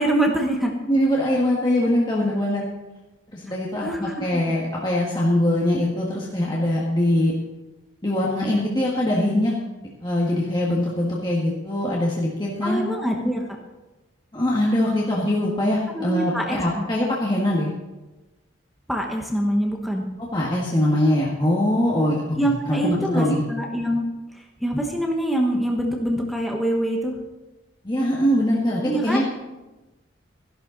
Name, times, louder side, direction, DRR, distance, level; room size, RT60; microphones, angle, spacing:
voice 1, 0.0-0.8 3.8-4.3 12.6-13.4 15.9-16.8 18.9-20.0 22.4-24.0 24.4-27.1 28.9-29.2, right 1 dB, ahead, 1 dB, 1.1 m, -24 dB
voice 2, 0.9-2.6 3.3-7.3 8.0-9.6 10.0-12.8 14.3-17.7 20.2-22.2 22.7-23.4 27.8-29.2, left 1 dB, 20° left, -4 dB, 1.6 m, -22 dB
13.5 x 11.5 x 3.9 m, 1.1 s
head